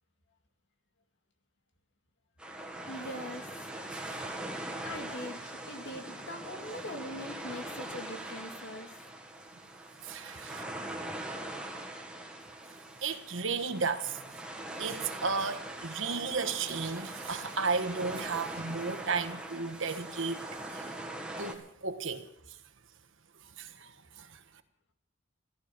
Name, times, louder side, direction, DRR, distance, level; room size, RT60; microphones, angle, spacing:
sound 1, 2.4-21.6, right 1 dB, 5° right, 1.8 m, -42 dB
voice 1, 2.9-3.5 3.9-9.0, left 1 dB, 60° left, 2.3 m, -43 dB
voice 2, 10.0-10.6 13.0-14.2 14.8-20.9 21.4-22.2 23.6-24.4, right 4 dB, 65° right, 1.4 m, -34 dB
15.0 x 14.0 x 6.1 m
head